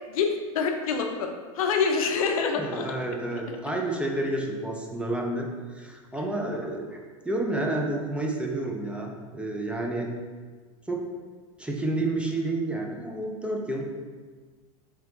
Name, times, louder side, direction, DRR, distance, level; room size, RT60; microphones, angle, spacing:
voice 1, 0.1-1.3 1.5-3.7, left 5 dB, 80° left, 4 dB, 0.5 m, -27 dB
voice 2, 2.6-7.0 7.2-10.1 10.9-11.1 11.6-13.9, right 2 dB, 5° right, 0 dB, 0.4 m, -30 dB
3.5 x 3.1 x 3.0 m, 1.5 s
hypercardioid pair, 105°, 18 cm